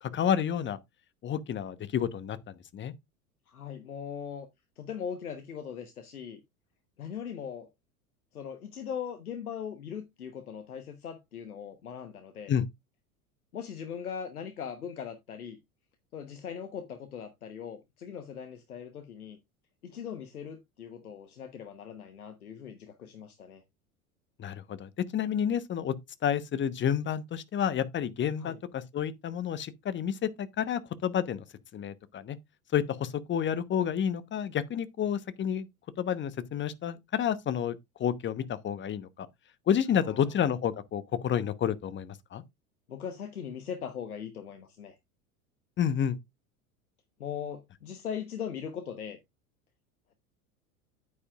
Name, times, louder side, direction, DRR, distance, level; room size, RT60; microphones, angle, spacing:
voice 1, 0.0-0.8 1.2-2.4 2.7-2.9 12.5-12.6 24.4-26.0 26.2-31.4 31.7-32.4 32.7-35.7 36.0-39.3 39.7-42.4 45.8-46.2, left 9 dB, 25° left, 1.0 m, -30 dB
voice 2, 3.5-4.5 4.8-6.4 7.0-7.7 8.3-12.5 13.5-15.6 16.1-19.4 19.8-23.6 28.4-28.6 39.9-40.3 42.9-45.0 47.2-49.2, left 7 dB, 80° left, 1.1 m, -40 dB
9.8 x 9.5 x 2.4 m
figure-of-eight pair, 80°, 44 cm